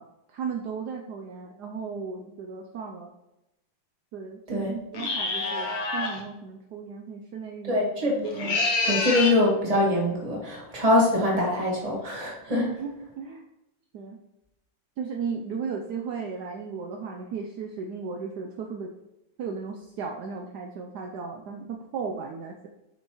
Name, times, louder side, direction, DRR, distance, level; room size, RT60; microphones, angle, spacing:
voice 1, 0.0-3.1 4.1-7.8 8.9-9.0 12.5-13.4 13.9-14.2 15.0-18.9 19.4-22.7, right 5 dB, 75° right, 2 dB, 0.9 m, -35 dB
sound 1, 4.9-6.2 8.2-9.4, left 3 dB, 50° left, 1.2 m, -27 dB
voice 2, 7.6-8.6 8.8-12.7, left 1 dB, 20° right, -3 dB, 1.4 m, -24 dB
7.7 x 5.4 x 3.1 m, 0.91 s
omnidirectional pair, 2.4 m